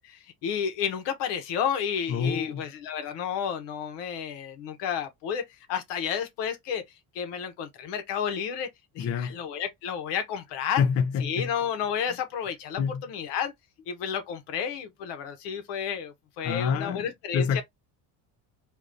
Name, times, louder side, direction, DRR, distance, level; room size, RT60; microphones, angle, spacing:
voice 1, 0.0-5.4 5.7-6.8 7.1-8.7 8.9-10.9 11.2-13.5 13.9-17.6, left 8 dB, 80° left, 1.0 m, -31 dB
voice 2, 2.1-2.6 9.0-9.3 10.8-11.5 12.8-13.0 16.4-17.6, left 7 dB, 40° left, 0.4 m, -27 dB
3.6 x 2.6 x 2.5 m
cardioid pair, 105°, 41 cm